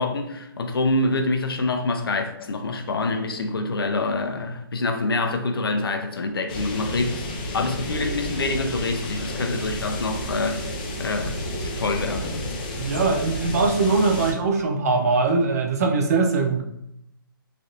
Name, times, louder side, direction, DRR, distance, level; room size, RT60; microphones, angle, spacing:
voice 1, 0.0-7.3 7.5-10.7 11.0-12.4, left 2 dB, 85° left, 0.5 m, -26 dB
sound 1, 6.5-14.3, left 1 dB, 25° left, 0.3 m, -31 dB
voice 2, 12.8-16.6, right 3 dB, 45° right, 0.5 m, -21 dB
3.2 x 2.5 x 2.7 m
hypercardioid pair, 160°, 12 cm